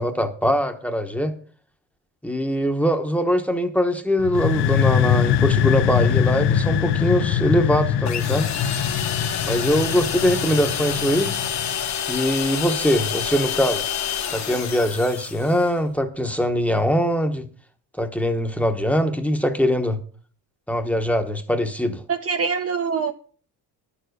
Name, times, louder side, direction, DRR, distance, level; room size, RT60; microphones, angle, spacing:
voice 1, 0.0-1.3 2.2-8.5 9.5-11.3 12.1-13.9 14.3-17.5 18.0-20.0 20.7-22.0, equal, 5° left, 1.0 m, -22 dB
sound 1, 4.2-11.8, left 8 dB, 85° left, 0.8 m, -22 dB
sound 2, 8.1-15.7, left 8 dB, 45° left, 1.2 m, -28 dB
voice 2, 22.1-23.1, right 6 dB, 35° right, 0.7 m, -24 dB
11.0 x 7.0 x 6.5 m
cardioid pair, 175°, 40 cm